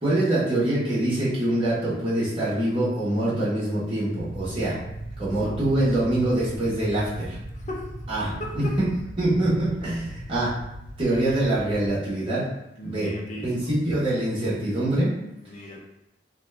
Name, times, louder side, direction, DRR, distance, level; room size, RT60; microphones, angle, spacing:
voice 1, 0.0-4.8 5.2-7.4 8.1-8.6 9.2-10.5 11.0-12.4 12.8-13.1 13.4-15.1, right 1 dB, 30° right, -9 dB, 1.2 m, -24 dB
sound 1, 4.2-11.9, right 1 dB, 80° right, 0.5 m, -38 dB
voice 2, 7.5-7.9 8.4-8.8 12.8-13.7 15.4-15.8, left 1 dB, 40° left, -1 dB, 0.5 m, -37 dB
2.8 x 2.3 x 3.2 m, 0.86 s
head